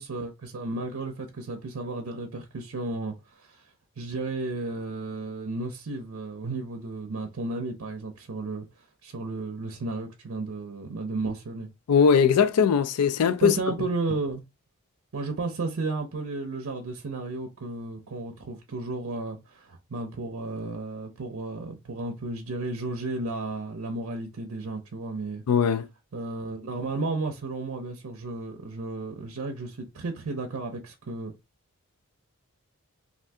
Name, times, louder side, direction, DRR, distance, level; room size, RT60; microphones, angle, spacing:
voice 1, 0.0-3.7 4.0-11.7 13.4-14.4 15.1-25.4 26.1-31.3, right 3 dB, 65° right, 0.5 m, -33 dB
voice 2, 11.9-13.5 25.5-25.9, left 7 dB, 90° left, 0.4 m, -20 dB
2.6 x 2.5 x 3.3 m
head